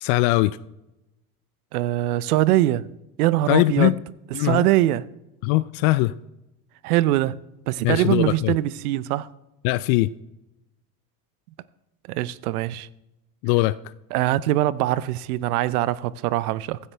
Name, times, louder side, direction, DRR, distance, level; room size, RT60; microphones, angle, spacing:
voice 1, 0.0-0.6 3.5-4.0 4.3-4.7 5.4-6.1 7.8-8.5 9.6-10.1 13.4-13.8, left 20 dB, 60° left, 0.5 m, -20 dB
voice 2, 1.7-2.8 3.2-3.9 4.4-5.0 6.8-7.3 7.7-9.3 12.1-12.9 14.1-16.8, right 15 dB, 75° right, 0.7 m, -22 dB
15.5 x 13.0 x 3.4 m
hypercardioid pair, 75°, 45 cm